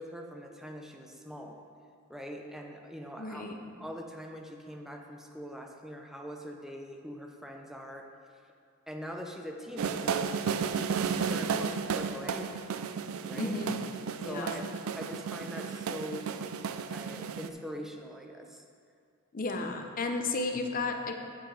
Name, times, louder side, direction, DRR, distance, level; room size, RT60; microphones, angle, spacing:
voice 1, 0.0-1.6 2.1-3.5 3.8-8.1 8.9-10.3 10.7-12.8 13.3-13.5 14.2-16.3 16.9-18.6, equal, ahead, 2 dB, 0.6 m, -42 dB
voice 2, 3.2-3.5 13.3-13.8 14.2-14.6 19.3-21.1, left 3 dB, 40° left, 4 dB, 0.7 m, -33 dB
sound 1, 9.8-17.5, right 6 dB, 70° right, 0.4 m, -33 dB
8.1 x 5.9 x 4.8 m, 2.2 s
head